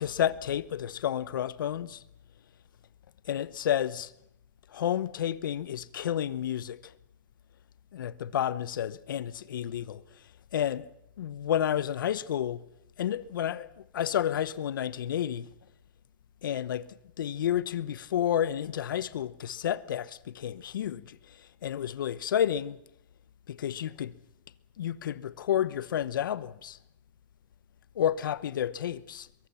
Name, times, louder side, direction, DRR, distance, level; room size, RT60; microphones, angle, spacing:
voice 1, 0.0-2.0 3.3-4.1 4.7-6.9 7.9-10.0 10.5-10.9 11.2-12.6 13.0-13.7 13.9-15.5 16.4-16.9 17.2-21.2 21.6-22.8 23.5-24.1 24.8-26.8 28.0-29.3, left 10 dB, 80° left, 1.0 m, -30 dB
23.0 x 23.0 x 5.8 m
hypercardioid pair, 150°, 11 cm